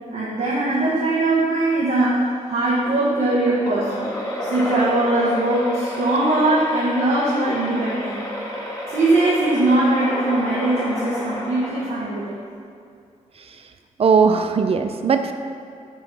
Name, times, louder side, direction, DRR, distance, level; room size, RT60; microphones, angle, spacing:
voice 1, 0.1-4.1 4.4-8.2 8.9-12.4, right 2 dB, 90° right, -8 dB, 1.2 m, -21 dB
sound 1, 3.6-12.4, left 1 dB, 25° left, 1.7 m, -30 dB
voice 2, 14.0-15.3, right 5 dB, 50° right, 8 dB, 0.4 m, -18 dB
5.4 x 5.3 x 6.0 m, 2.4 s
wide cardioid pair, 150°, 13 cm